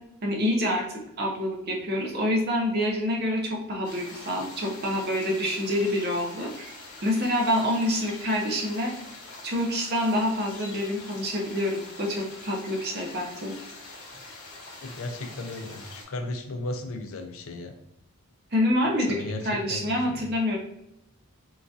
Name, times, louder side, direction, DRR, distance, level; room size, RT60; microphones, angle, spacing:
voice 1, 0.2-6.7 7.0-8.9 9.4-13.5 18.5-19.2 19.4-20.6, left 1 dB, 45° right, 0 dB, 0.7 m, -27 dB
sound 1, 3.8-16.0, left 2 dB, 50° left, 1.1 m, -44 dB
voice 2, 14.8-17.7 19.1-20.2, left 2 dB, 65° left, 6 dB, 0.4 m, -35 dB
3.8 x 2.6 x 2.3 m, 0.82 s
head